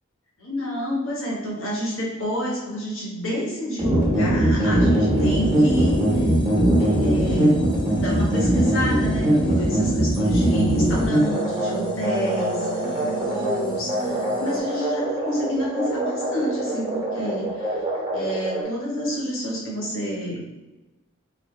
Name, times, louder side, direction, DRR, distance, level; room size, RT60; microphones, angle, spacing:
voice 1, 0.4-6.3 6.8-7.6 7.9-12.8 13.2-17.8 18.1-20.5, equal, 70° left, -4 dB, 1.3 m, -28 dB
sound 1, 3.8-18.6, right 1 dB, 20° right, 1.2 m, -22 dB
sound 2, 5.1-14.6, right 2 dB, 25° left, 0.6 m, -34 dB
4.1 x 2.7 x 3.2 m, 1.1 s
head